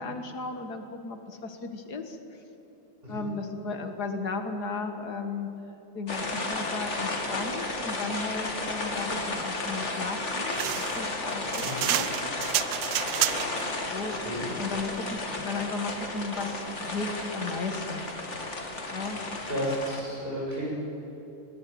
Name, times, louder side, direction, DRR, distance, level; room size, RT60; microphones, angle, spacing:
voice 1, 0.0-2.2 3.1-5.5 5.9-12.1 13.1-13.3 13.9-14.2 14.6-18.1 18.9-19.2, left 3 dB, 50° left, 6 dB, 2.1 m, -35 dB
sound 1, 6.1-20.0, left 2 dB, 35° left, 2.5 m, -33 dB
sound 2, 10.5-13.7, right 14 dB, 85° right, 1.6 m, -29 dB
voice 2, 19.5-20.8, equal, 25° right, -5 dB, 8.0 m, -32 dB
20.5 x 19.5 x 9.4 m, 3.0 s
omnidirectional pair, 2.3 m